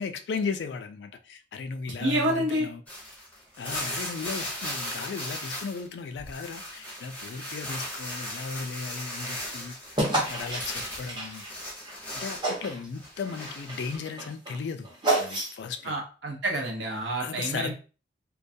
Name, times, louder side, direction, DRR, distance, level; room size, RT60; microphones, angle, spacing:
voice 1, 0.0-2.8 3.6-9.8 10.3-11.4 12.1-14.9 15.1-16.0 17.2-17.7, left 5 dB, 65° left, 0.3 m, -36 dB
voice 2, 2.0-2.7 15.9-17.7, right 1 dB, 80° right, 0.7 m, -28 dB
sound 1, 2.9-5.9 6.1-12.5 12.9-14.0, left 1 dB, 10° left, 0.6 m, -37 dB
sound 2, 10.0-12.0 12.4-12.9 13.2-15.8, right 1 dB, 25° right, 0.8 m, -30 dB
2.2 x 2.2 x 2.6 m
head